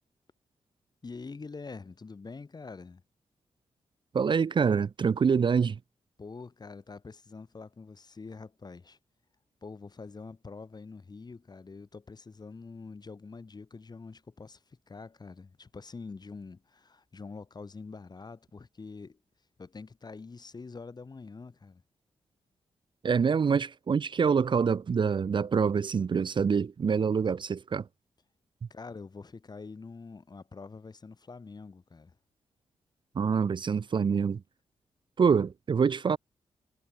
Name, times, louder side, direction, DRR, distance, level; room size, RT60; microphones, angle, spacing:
voice 1, 1.0-3.0 6.2-9.0 9.6-19.2 19.6-21.8 28.7-32.1, left 4 dB, 40° left, 3.4 m, -45 dB
voice 2, 4.1-5.8 23.0-27.9 33.1-34.4 35.2-36.2, right 6 dB, 50° right, 0.7 m, -26 dB
cardioid pair, 60°, 11 cm